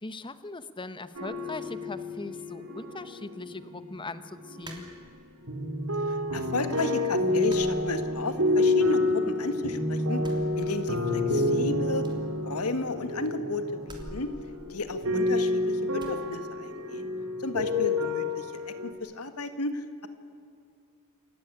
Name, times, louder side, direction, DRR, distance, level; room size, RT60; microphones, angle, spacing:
voice 1, 0.0-4.9, left 2 dB, 20° left, 13 dB, 1.0 m, -40 dB
sound 1, 1.1-5.1 5.4-18.9, left 2 dB, 70° right, 2.7 m, -29 dB
sound 2, 4.6-5.5 5.9-6.6 6.8-7.0 7.4-8.6 8.9-9.7 10.1-11.3 11.5-11.6 12.0-13.1 13.8-15.5 16.0-16.2, right 1 dB, 20° right, 3.1 m, -49 dB
voice 2, 6.1-10.2 10.6-12.1 12.4-14.3 14.7-17.1 17.4-20.1, left 2 dB, 85° left, 9 dB, 1.8 m, -33 dB
27.5 x 15.5 x 9.9 m, 2.4 s
head